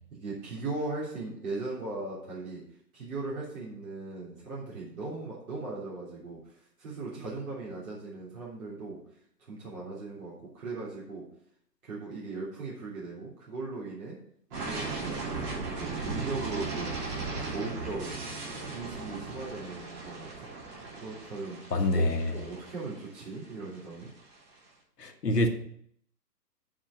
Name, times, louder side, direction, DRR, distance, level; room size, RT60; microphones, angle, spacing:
voice 1, 0.1-2.6 2.9-9.0 9.5-11.2 11.8-14.2 14.5-16.9 17.5-18.2 18.7-20.5 21.0-22.1 22.3-24.1, right 3 dB, 60° right, -6 dB, 3.4 m, -38 dB
sound 1, 14.5-24.3, right 3 dB, 35° right, 3.2 m, -37 dB
voice 2, 21.7-22.3 25.0-25.5, left 1 dB, 75° left, 4 dB, 1.5 m, -26 dB
7.2 x 5.1 x 6.9 m, 0.68 s
figure-of-eight pair, 135°, 49 cm